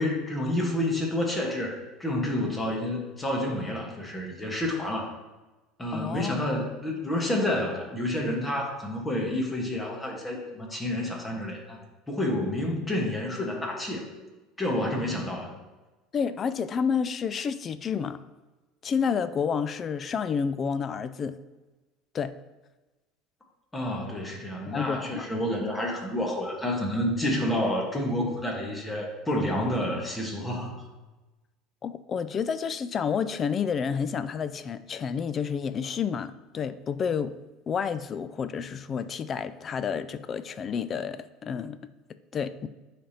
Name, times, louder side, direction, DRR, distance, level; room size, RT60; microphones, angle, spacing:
voice 1, 0.0-5.1 5.8-11.8 12.1-14.1 14.6-15.5 23.7-30.8, left 1 dB, 15° left, -1 dB, 1.3 m, -29 dB
voice 2, 5.9-6.4 16.1-18.2 18.8-21.4 22.1-22.3 24.7-25.3 31.8-37.4 37.7-41.8 42.3-42.7, left 6 dB, 35° left, 14 dB, 0.3 m, -30 dB
10.0 x 3.4 x 2.8 m, 1.2 s
supercardioid pair, 120°, 0 cm